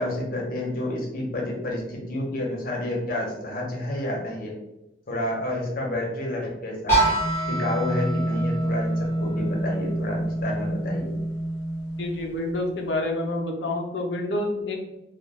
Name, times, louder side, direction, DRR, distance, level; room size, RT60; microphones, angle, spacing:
voice 1, 0.0-4.5 5.1-7.1 7.5-11.2, left 1 dB, 55° left, -1 dB, 0.7 m, -29 dB
sound 1, 6.9-12.7, right 1 dB, 15° left, 1.0 m, -26 dB
voice 2, 12.0-14.8, left 1 dB, 90° left, 2 dB, 0.5 m, -28 dB
2.2 x 2.2 x 3.2 m, 0.89 s
head